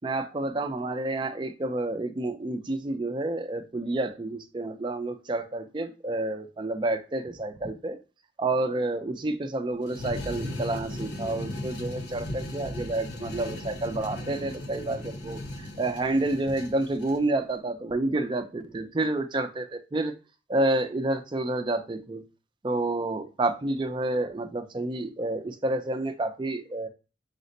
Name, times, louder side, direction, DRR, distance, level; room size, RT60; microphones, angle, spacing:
voice 1, 0.0-8.0 8.4-15.4 15.8-20.1 20.5-22.2 22.6-26.9, right 2 dB, 25° right, 0.4 m, -29 dB
sound 1, 9.8-17.2, left 1 dB, 65° left, 0.8 m, -37 dB
4.9 x 2.1 x 3.8 m
head